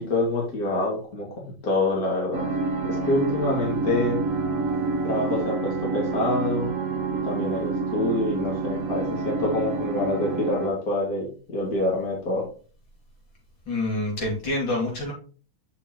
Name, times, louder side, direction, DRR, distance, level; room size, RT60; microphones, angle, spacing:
voice 1, 0.0-2.5 2.8-4.2 5.0-6.7 7.2-12.5, left 2 dB, 50° left, -3 dB, 2.7 m, -26 dB
sound 1, 2.3-10.7, right 4 dB, 50° right, 1.3 m, -28 dB
voice 2, 13.7-15.1, left 2 dB, 70° left, -3 dB, 3.2 m, -27 dB
6.8 x 5.9 x 3.0 m, 0.38 s
omnidirectional pair, 2.1 m